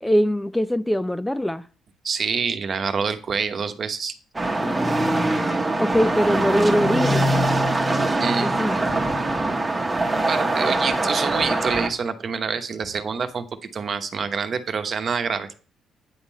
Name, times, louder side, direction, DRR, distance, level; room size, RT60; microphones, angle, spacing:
voice 1, 0.0-1.6 4.6-7.4 8.4-8.8 9.8-9.9, equal, 5° left, 0.3 m, -23 dB
voice 2, 2.0-4.1 8.2-8.5 10.3-13.5 13.7-15.5, right 5 dB, 45° right, 1.0 m, -26 dB
sound 1, 4.3-11.9, right 2 dB, 15° right, 1.2 m, -23 dB
9.5 x 3.7 x 7.2 m
cardioid pair, 105°, 0 cm